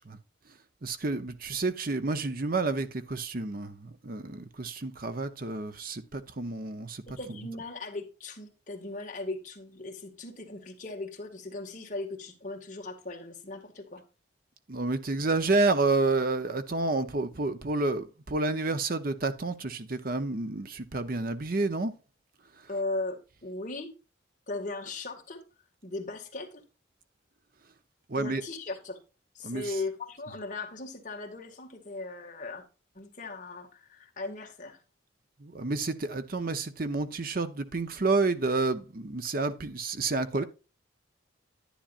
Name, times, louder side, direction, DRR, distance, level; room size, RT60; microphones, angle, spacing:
voice 1, 0.8-7.4 14.7-21.9 28.1-28.4 29.4-29.7 35.4-40.4, right 3 dB, 45° right, 0.8 m, -30 dB
voice 2, 7.1-14.0 22.7-23.9 24.5-25.4 25.8-26.6 28.2-29.0 29.3-32.6 32.9-34.8, left 2 dB, 40° left, 1.9 m, -38 dB
10.0 x 10.0 x 2.5 m
head